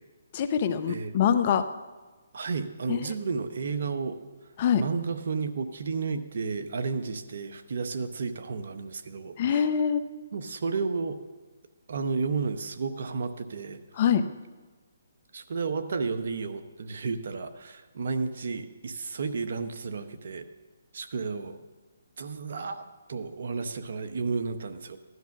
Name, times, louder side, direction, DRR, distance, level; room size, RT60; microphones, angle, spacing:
voice 1, 0.3-1.6 2.9-3.1 4.6-4.8 9.4-10.0 14.0-14.2, left 8 dB, 40° left, 10 dB, 0.9 m, -24 dB
voice 2, 2.3-4.2 4.7-9.7 10.3-11.2 11.9-13.8 15.3-20.4 20.9-21.6 22.2-25.0, right 4 dB, 60° right, 9 dB, 1.2 m, -32 dB
16.5 x 11.5 x 6.0 m, 1.3 s
hypercardioid pair, 150°, 0 cm